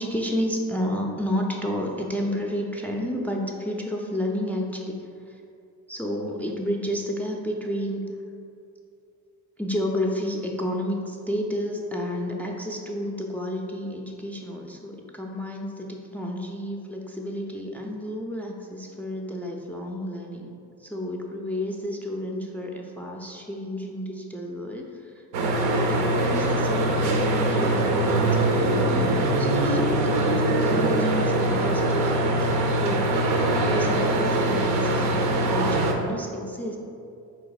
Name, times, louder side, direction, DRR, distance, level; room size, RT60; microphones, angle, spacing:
voice 1, 0.0-5.0 5.3-5.4 5.9-8.0 9.6-20.5 20.8-36.8, equal, 5° left, 0 dB, 0.3 m, -31 dB
sound 1, 25.3-35.9, right 1 dB, 85° right, 0.6 m, -22 dB
4.1 x 2.8 x 3.9 m, 2.5 s
supercardioid pair, 80°, 39 cm